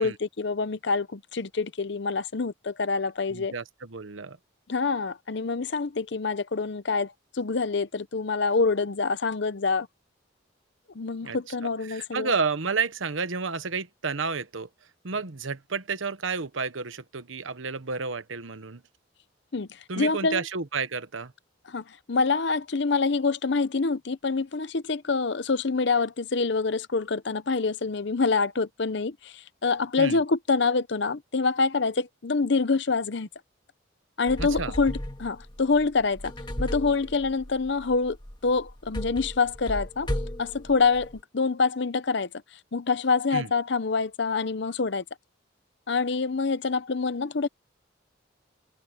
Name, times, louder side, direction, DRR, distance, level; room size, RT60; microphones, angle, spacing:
voice 1, 0.0-3.5 4.7-9.9 10.9-12.3 19.5-20.4 21.7-33.3 34.2-36.3 36.6-38.2 38.4-40.1 40.4-42.3 42.7-45.0 45.9-47.5, left 4 dB, 60° left, 0.7 m, -26 dB
voice 2, 3.3-4.4 11.2-11.4 11.9-14.7 15.0-18.8 19.9-21.3 30.0-30.2 34.4-34.7 43.3-43.5, right 4 dB, 80° right, 1.1 m, -31 dB
sound 1, 34.3-41.2, equal, 25° left, 2.2 m, -36 dB
head